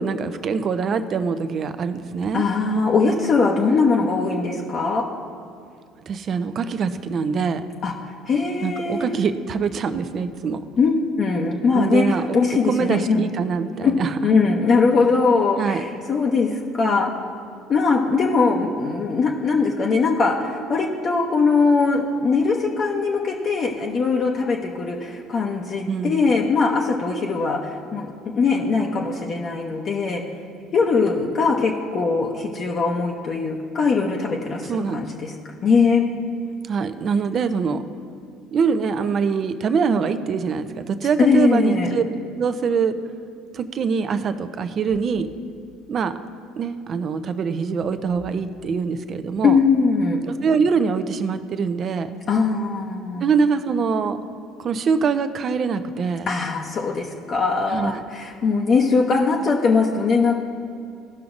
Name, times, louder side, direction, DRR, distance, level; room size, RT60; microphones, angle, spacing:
voice 1, 0.0-2.4 6.1-7.6 8.6-10.6 11.7-12.4 12.7-14.1 15.6-15.8 25.9-26.2 34.7-35.0 36.7-37.8 38.5-42.0 42.4-43.0 43.5-45.3 45.9-46.1 46.6-49.6 50.3-52.2 53.2-54.2 54.6-56.3 57.7-58.0, right 5 dB, 45° right, 10 dB, 0.5 m, -23 dB
voice 2, 2.3-5.1 7.8-9.1 10.8-13.3 13.8-13.9 14.2-17.1 17.7-30.2 30.7-35.3 35.6-36.0 41.2-41.9 49.4-50.2 52.3-53.2 56.3-60.4, left 4 dB, 45° left, 0 dB, 0.7 m, -21 dB
16.0 x 5.8 x 2.6 m, 2.3 s
hypercardioid pair, 65°, 0 cm